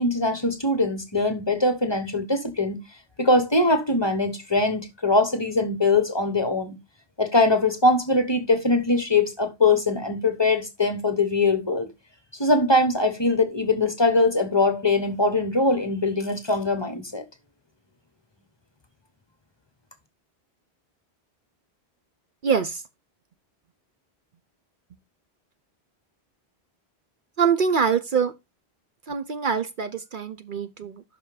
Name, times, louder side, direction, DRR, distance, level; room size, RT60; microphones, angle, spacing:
voice 1, 0.0-2.8 3.2-6.8 7.2-11.9 12.3-17.2, left 2 dB, 25° left, 1.0 m, -22 dB
voice 2, 22.4-22.8 27.4-28.3 29.1-31.0, right 6 dB, 55° right, 0.8 m, -24 dB
6.0 x 5.5 x 4.9 m
omnidirectional pair, 1.1 m